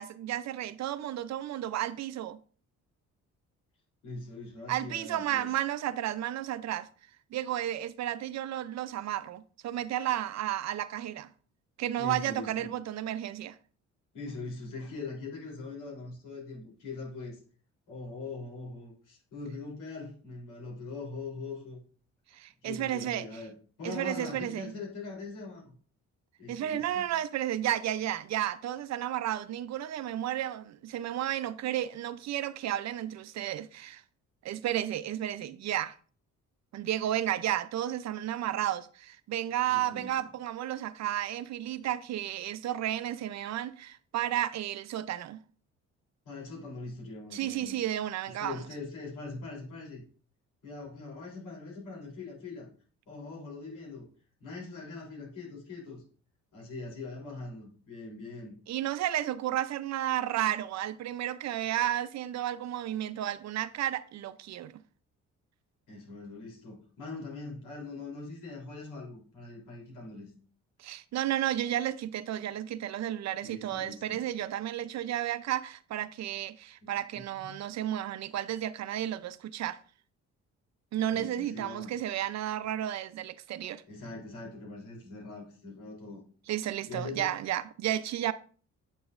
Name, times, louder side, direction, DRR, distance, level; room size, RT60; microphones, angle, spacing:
voice 1, 0.0-2.4 4.7-6.9 7.3-11.3 11.8-13.6 22.3-23.3 23.8-24.7 26.5-34.0 34.4-35.9 36.7-45.4 47.3-48.6 58.7-64.8 70.8-79.8 80.9-83.8 86.5-88.3, right 12 dB, 60° right, 0.5 m, -32 dB
voice 2, 4.0-5.5 12.0-12.7 14.1-17.4 17.9-21.8 22.6-25.8 26.4-27.1 39.7-40.1 46.3-47.8 48.3-50.0 50.6-52.7 53.1-54.1 54.4-56.0 56.5-58.6 65.9-70.3 73.4-74.2 77.4-77.5 81.1-81.9 83.9-86.2 86.9-87.3, left 3 dB, 90° left, 3.4 m, -42 dB
8.1 x 6.9 x 2.5 m
cardioid pair, 90°, 30 cm